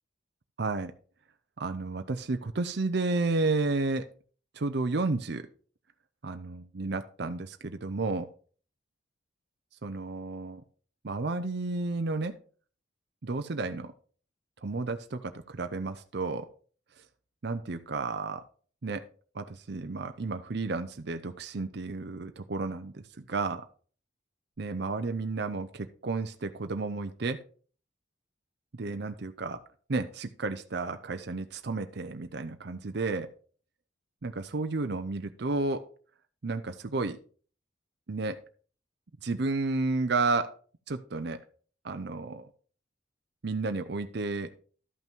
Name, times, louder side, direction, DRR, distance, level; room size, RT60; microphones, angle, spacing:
voice 1, 0.6-0.9 1.6-4.0 4.5-5.5 6.2-8.3 9.8-10.6 11.0-12.3 13.2-13.9 14.6-16.5 17.4-18.4 18.8-19.0 19.3-23.6 24.6-27.4 28.7-29.6 29.9-33.3 34.2-35.8 36.4-37.2 38.1-38.4 39.2-40.5 40.9-41.4 41.8-42.5 43.4-44.5, right 3 dB, 55° right, 8 dB, 0.6 m, -32 dB
12.0 x 5.7 x 4.5 m, 0.42 s
head